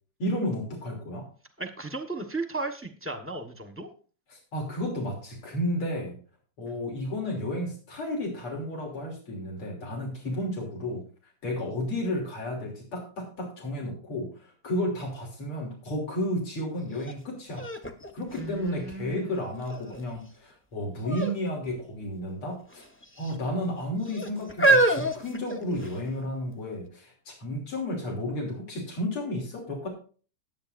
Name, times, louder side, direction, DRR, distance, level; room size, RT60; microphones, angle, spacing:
voice 1, 0.2-1.3 4.3-6.2 6.6-11.0 11.4-17.7 18.1-22.8 23.2-29.9, left 1 dB, 80° left, -1 dB, 4.0 m, -32 dB
voice 2, 1.6-3.9 6.6-6.8 18.4-19.4, right 3 dB, 10° right, 6 dB, 0.7 m, -35 dB
sound 1, 17.0-17.1 17.6-19.1 19.7-20.2 21.0-21.4 21.7-21.8 22.7-23.3 24.0-26.1 26.8-26.9, right 2 dB, 15° left, 0.4 m, -26 dB
20.5 x 8.3 x 2.6 m, 0.39 s
omnidirectional pair, 2.4 m